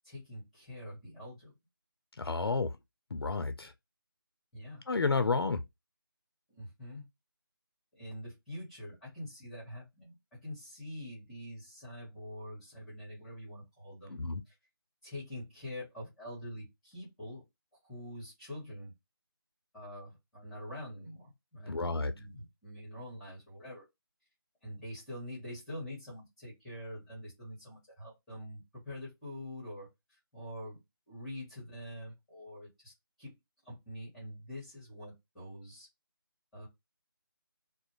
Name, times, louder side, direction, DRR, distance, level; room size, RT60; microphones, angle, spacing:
voice 1, 0.0-1.5 2.2-2.6 4.5-4.8 6.5-7.0 7.9-14.6 15.0-17.4 17.8-18.9 19.7-23.9 24.6-32.9 33.2-33.4 33.6-35.9 36.5-36.7, left 1 dB, ahead, 1.0 m, -45 dB
voice 2, 2.2-2.7 3.1-3.7 4.9-5.6 14.1-14.4 21.7-22.1, left 4 dB, 80° left, 0.4 m, -31 dB
2.4 x 2.0 x 3.0 m
figure-of-eight pair, 160°, 13 cm